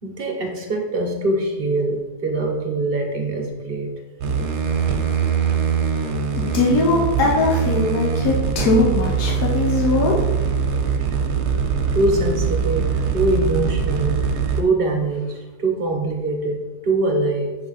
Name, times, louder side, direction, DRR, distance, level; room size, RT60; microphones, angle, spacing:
voice 1, 0.0-3.9 11.9-17.6, right 2 dB, 40° right, 2 dB, 1.0 m, -23 dB
sound 1, 4.2-14.6, right 6 dB, 75° right, 1.3 m, -22 dB
voice 2, 6.3-10.2, left 2 dB, 80° left, -2 dB, 1.6 m, -20 dB
7.0 x 3.9 x 4.0 m, 1.2 s
omnidirectional pair, 1.7 m